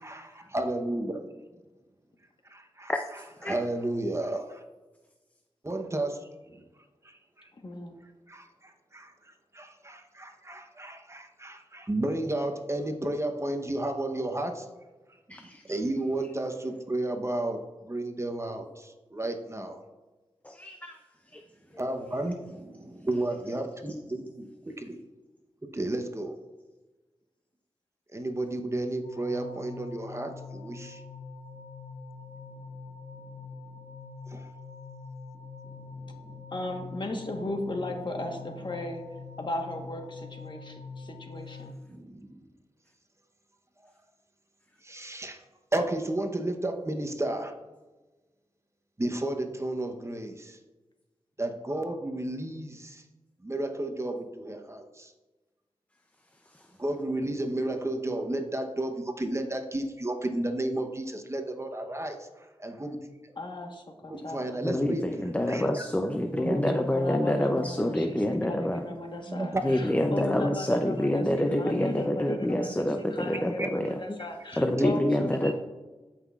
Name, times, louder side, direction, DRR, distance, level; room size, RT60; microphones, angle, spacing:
voice 1, 0.0-1.3 2.5-2.9 3.4-4.6 5.6-6.2 7.1-7.5 8.3-14.7 15.4-19.8 21.8-25.0 25.7-26.4 28.1-31.0 34.3-34.5 35.6-36.4 41.9-42.5 44.8-45.4 45.7-47.6 49.0-50.6 51.4-53.0 53.4-55.1 56.8-62.3 62.6-63.0 64.1-65.0 65.5-65.9 66.5-66.6 69.3-69.6 73.6-73.7 74.8-74.9 75.4-75.5, right 1 dB, 25° right, 5 dB, 0.9 m, -32 dB
voice 2, 7.5-8.0 36.5-41.8 63.4-64.6 66.3-75.5, left 2 dB, 45° left, 3 dB, 1.2 m, -37 dB
voice 3, 15.3-15.6 20.4-21.0 21.3-21.4 64.6-68.8 69.6-74.0 74.6-75.5, left 1 dB, 15° left, 5 dB, 0.5 m, -27 dB
sound 1, 29.0-41.7, left 4 dB, 75° left, 0.7 m, -44 dB
13.5 x 5.8 x 2.4 m, 1.2 s
wide cardioid pair, 60°, 11 cm